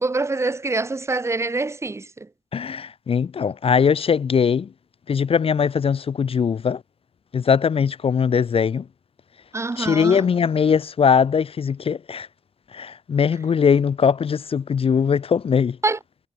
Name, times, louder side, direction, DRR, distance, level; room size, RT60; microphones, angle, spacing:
voice 1, 0.0-2.3 9.5-10.2 15.8-16.0, right 3 dB, 20° right, 1.4 m, -25 dB
voice 2, 2.5-4.7 5.1-6.8 7.3-8.8 9.8-12.3 12.7-15.8, left 6 dB, 45° left, 0.7 m, -20 dB
wide cardioid pair, 165°, 13 cm